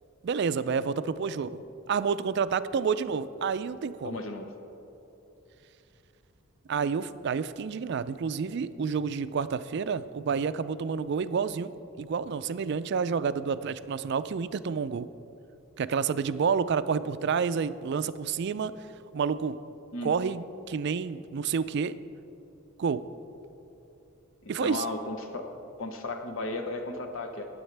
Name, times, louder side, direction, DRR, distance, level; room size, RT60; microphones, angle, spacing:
voice 1, 0.2-1.6 1.9-4.2 6.7-11.7 12.0-15.1 15.8-18.7 19.1-19.6 20.0-21.9 22.8-23.0 24.5-24.9, right 6 dB, 55° right, 14 dB, 0.3 m, -29 dB
voice 2, 4.0-4.5 19.9-20.1 24.4-25.5 25.8-27.5, left 2 dB, 70° left, 5 dB, 0.9 m, -35 dB
19.5 x 8.0 x 3.3 m, 2.9 s
head